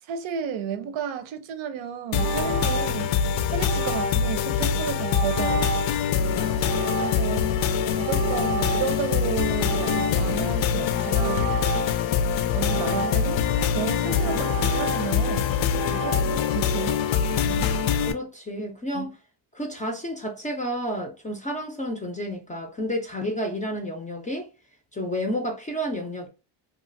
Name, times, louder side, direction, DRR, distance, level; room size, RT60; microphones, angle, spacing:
voice 1, 0.0-3.1 3.5-5.7 7.0-7.5 7.9-11.5 12.5-13.4 13.7-15.6 16.0-17.1 17.4-17.7 18.9-19.1, right 8 dB, 90° right, 0.7 m, -32 dB
sound 1, 2.1-18.1, left 7 dB, 75° left, 0.5 m, -24 dB
sound 2, 2.2-3.2 3.6-4.4 4.9-6.0 6.6-7.4 7.9-9.2 9.6-10.4 10.9-12.0 12.6-13.5 14.0-15.3 15.7-16.2, right 4 dB, 45° right, 0.4 m, -32 dB
voice 2, 6.3-6.8 14.2-14.4 15.9-16.1 18.1-19.2 19.5-24.5 24.9-26.3, equal, 20° left, 0.4 m, -31 dB
3.0 x 2.4 x 2.5 m
cardioid pair, 160°, 45 cm